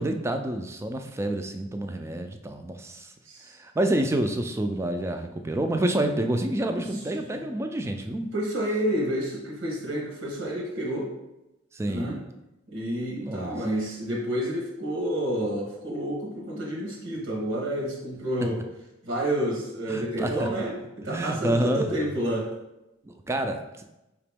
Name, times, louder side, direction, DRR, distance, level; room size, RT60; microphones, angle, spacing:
voice 1, 0.0-3.1 3.6-8.3 11.7-12.2 13.2-13.6 19.9-20.5 21.1-21.9 23.0-23.6, right 1 dB, 15° right, 5 dB, 0.3 m, -28 dB
voice 2, 8.3-11.1 11.9-12.2 12.7-18.6 19.0-22.5, right 1 dB, 85° right, -2 dB, 1.2 m, -29 dB
5.0 x 2.9 x 3.5 m, 0.94 s
head